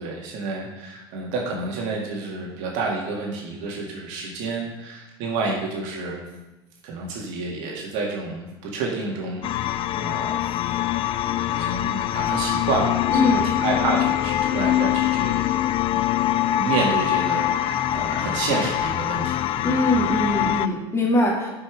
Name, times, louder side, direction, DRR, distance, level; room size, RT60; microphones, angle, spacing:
voice 1, 0.0-6.2 6.8-10.4 11.3-15.4 15.9-16.0 16.6-19.7, right 3 dB, 60° right, -1 dB, 2.1 m, -29 dB
sound 1, 9.4-20.7, left 12 dB, 40° left, 0.4 m, -23 dB
voice 2, 13.1-13.5 19.6-21.5, left 1 dB, 20° left, -2 dB, 2.4 m, -22 dB
10.5 x 5.7 x 3.4 m, 1.0 s
hypercardioid pair, 80°, 13 cm